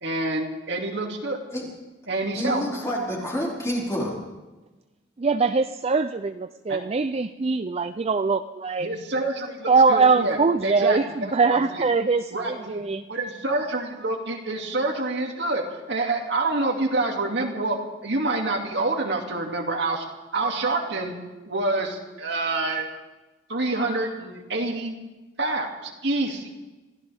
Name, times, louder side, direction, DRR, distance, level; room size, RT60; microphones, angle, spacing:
voice 1, 0.0-1.4 2.1-2.6 6.7-6.8 8.8-10.4 10.6-11.8 12.3-12.8 13.1-20.1 20.3-21.1 21.5-22.9 23.5-24.9 25.4-25.7 26.0-26.4, right 2 dB, 70° right, 1 dB, 2.4 m, -27 dB
voice 2, 2.3-4.2, equal, 15° left, -5 dB, 5.2 m, -28 dB
voice 3, 5.2-8.9 9.7-13.0, right 4 dB, 35° right, 9 dB, 0.4 m, -22 dB
26.0 x 15.5 x 3.5 m, 1.1 s
head